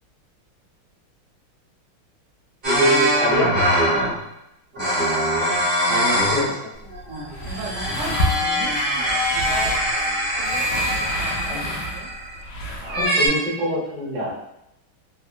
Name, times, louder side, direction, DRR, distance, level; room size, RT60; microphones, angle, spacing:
sound 1, 2.6-4.2 4.7-6.5 6.9-12.4 12.9-13.3, equal, 40° right, 1.2 m, -22 dB
voice 1, 2.6-3.5 5.9-6.6 11.4-11.6 12.8-14.3, equal, 60° right, -6 dB, 0.4 m, -24 dB
voice 2, 3.9-4.2 7.4-10.1 10.4-12.1, right 3 dB, 80° right, 0 dB, 1.5 m, -37 dB
sound 2, 6.7-13.1, equal, 75° left, 1.0 m, -30 dB
3.4 x 2.1 x 2.3 m, 0.85 s
omnidirectional pair, 2.4 m